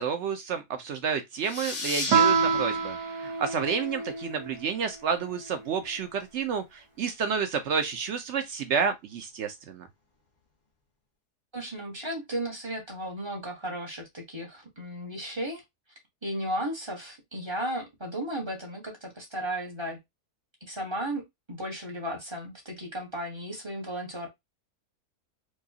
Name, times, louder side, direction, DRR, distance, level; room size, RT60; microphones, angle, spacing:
voice 1, 0.0-9.9, right 6 dB, 65° right, 0.7 m, -30 dB
sound 1, 1.4-4.7, left 3 dB, 40° left, 0.7 m, -37 dB
Guitar, 2.1-4.5, right 6 dB, 90° right, 1.3 m, -26 dB
voice 2, 11.5-15.6 16.2-20.0 20.6-24.3, right 1 dB, 20° right, 0.9 m, -35 dB
4.6 x 2.3 x 2.7 m
omnidirectional pair, 1.7 m